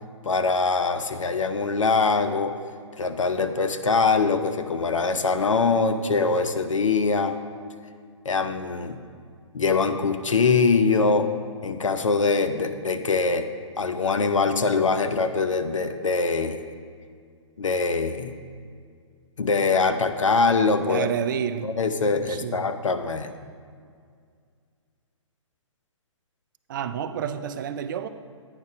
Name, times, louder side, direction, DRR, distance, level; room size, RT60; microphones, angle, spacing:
voice 1, 0.2-2.5 3.0-7.4 8.2-9.0 9.5-11.3 11.6-13.5 13.8-16.6 17.6-18.4 19.4-21.1 21.6-23.3, left 4 dB, 80° left, 8 dB, 0.6 m, -23 dB
voice 2, 20.9-21.7 22.3-22.7 26.7-28.1, right 8 dB, 40° right, 11 dB, 0.4 m, -29 dB
8.9 x 5.3 x 4.8 m, 2.1 s
figure-of-eight pair, 130°, 16 cm